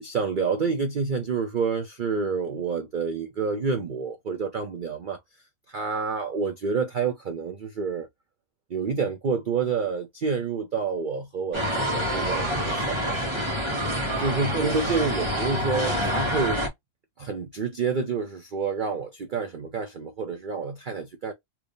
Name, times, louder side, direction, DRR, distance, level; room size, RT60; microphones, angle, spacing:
voice 1, 0.0-5.2 5.7-8.1 8.7-13.4 14.2-16.6 17.2-21.3, right 5 dB, 55° right, 0.5 m, -28 dB
sound 1, 11.5-16.7, equal, 20° right, 1.3 m, -27 dB
3.3 x 3.0 x 2.6 m
omnidirectional pair, 1.6 m